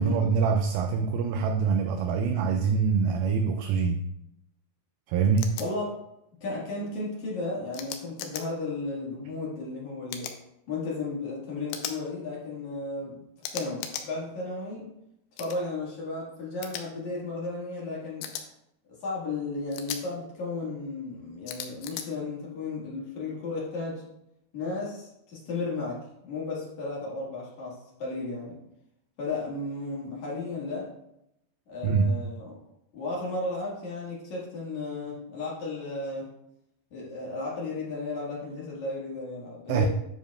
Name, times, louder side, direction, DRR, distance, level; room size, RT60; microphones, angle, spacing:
voice 1, 0.0-4.1 5.1-5.6 31.8-32.2 39.7-39.9, right 5 dB, 85° right, 6 dB, 2.1 m, -24 dB
sound 1, 5.4-5.7 7.7-8.4 10.1-10.4 11.7-12.0 13.4-14.1 15.4-15.6 16.6-16.8 18.2-18.4 19.7-20.0 21.5-22.1, left 9 dB, 90° left, 2.9 m, -36 dB
voice 2, 5.6-5.9 6.4-10.3 10.7-13.2 13.5-14.9 15.4-18.3 19.0-24.0 24.5-28.6 29.2-30.9 31.7-32.5 32.9-36.3 36.9-39.9, left 3 dB, 55° left, -5 dB, 2.6 m, -34 dB
9.7 x 7.1 x 2.3 m, 0.82 s
omnidirectional pair, 4.8 m